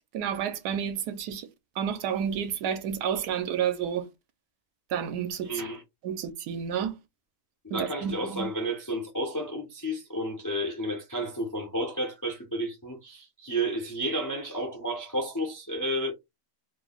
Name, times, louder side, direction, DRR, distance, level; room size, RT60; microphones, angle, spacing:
voice 1, 0.1-1.5 1.8-4.1 4.9-5.5 6.0-7.0 7.7-8.5, right 8 dB, 75° right, 1.2 m, -30 dB
voice 2, 5.4-5.8 7.6-16.1, right 1 dB, 25° left, 0.4 m, -31 dB
3.0 x 2.2 x 3.7 m
omnidirectional pair, 1.8 m